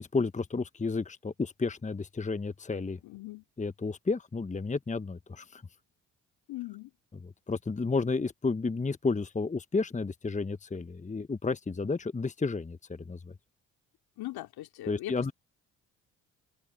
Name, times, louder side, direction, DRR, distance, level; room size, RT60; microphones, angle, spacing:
voice 1, 0.0-3.0 3.6-5.6 7.5-13.3 14.9-15.3, left 4 dB, 20° left, 1.3 m, -32 dB
voice 2, 3.0-3.4 6.5-6.9 14.2-15.3, left 16 dB, 65° left, 2.6 m, -40 dB
hypercardioid pair, 50°, 40 cm